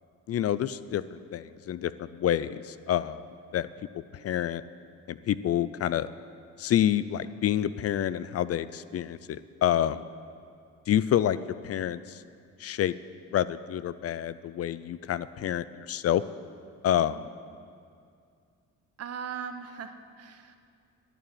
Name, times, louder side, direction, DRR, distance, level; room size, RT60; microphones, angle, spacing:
voice 1, 0.3-3.2 3.5-3.7 4.2-4.6 5.1-6.1 6.6-10.0 10.9-11.4 11.6-12.2 12.6-12.9 13.3-16.2 16.8-17.2, left 11 dB, 55° left, 15 dB, 0.5 m, -28 dB
voice 2, 19.0-20.6, right 7 dB, 55° right, 8 dB, 1.1 m, -39 dB
11.0 x 8.9 x 8.8 m, 2.3 s
cardioid pair, 90°, 30 cm